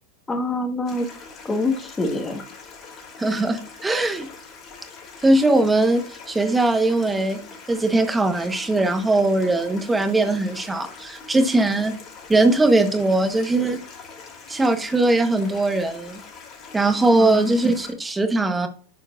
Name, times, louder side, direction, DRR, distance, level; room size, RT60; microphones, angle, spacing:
voice 1, 0.3-1.1 1.4-2.4 17.1-17.5, left 2 dB, 15° left, 3 dB, 1.7 m, -25 dB
Stream, 0.9-17.9, left 5 dB, 35° left, 2.7 m, -43 dB
voice 2, 3.2-4.3 5.2-7.4 7.7-11.9 12.3-13.8 14.5-16.2 16.7-18.7, right 2 dB, 10° right, 8 dB, 1.2 m, -20 dB
11.5 x 4.4 x 2.6 m, 0.41 s
hypercardioid pair, 100°, 0 cm